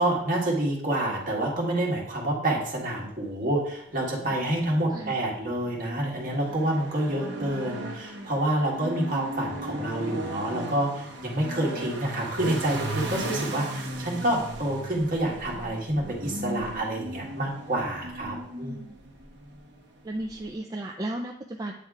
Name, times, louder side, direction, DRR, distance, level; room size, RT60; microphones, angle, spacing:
voice 1, 0.0-18.7, right 1 dB, 45° right, -3 dB, 1.7 m, -28 dB
sound 1, 3.9-20.6, right 1 dB, 60° right, 0.9 m, -37 dB
voice 2, 4.7-5.2 7.0-7.6 18.4-19.0 20.0-21.7, right 1 dB, 20° right, 2 dB, 0.3 m, -36 dB
8.8 x 3.3 x 3.6 m, 0.72 s
head